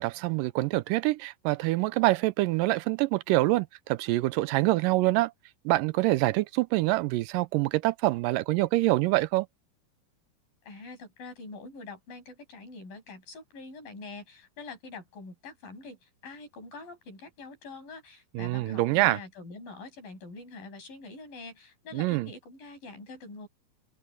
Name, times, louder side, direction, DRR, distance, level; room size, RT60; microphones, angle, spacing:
voice 1, 0.0-5.3 5.7-9.5 18.3-19.2 21.9-22.3, right 19 dB, 80° right, 2.1 m, -25 dB
voice 2, 10.6-16.0 16.2-23.5, left 3 dB, 75° left, 9.2 m, -45 dB
omnidirectional pair, 4.0 m